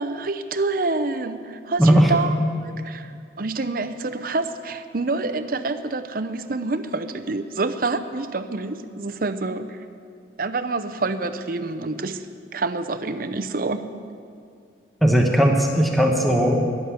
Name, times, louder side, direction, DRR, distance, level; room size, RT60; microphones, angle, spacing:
voice 1, 0.0-2.3 2.6-3.1 3.4-9.8 10.4-12.2 12.5-13.8, right 3 dB, 50° right, 9 dB, 0.7 m, -27 dB
voice 2, 1.8-2.2 15.0-16.9, equal, ahead, 1 dB, 1.1 m, -18 dB
13.5 x 11.0 x 8.2 m, 2.4 s
head